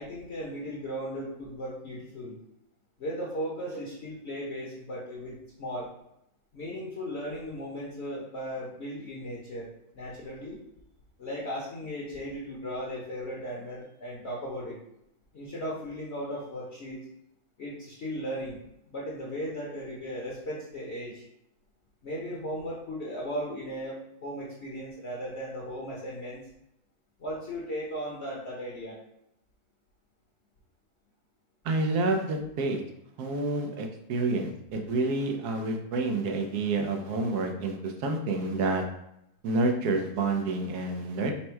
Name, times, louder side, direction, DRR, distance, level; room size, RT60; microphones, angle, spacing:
voice 1, 0.0-2.4 3.0-5.9 6.5-9.7 9.9-10.6 11.2-14.8 15.3-17.0 17.6-18.6 18.9-21.2 22.0-26.4 27.2-29.0, equal, 50° left, -4 dB, 1.0 m, -36 dB
voice 2, 31.6-32.8 33.2-38.8 39.4-41.3, right 2 dB, 80° right, 3 dB, 1.2 m, -28 dB
4.3 x 2.2 x 4.4 m, 0.80 s
omnidirectional pair, 1.6 m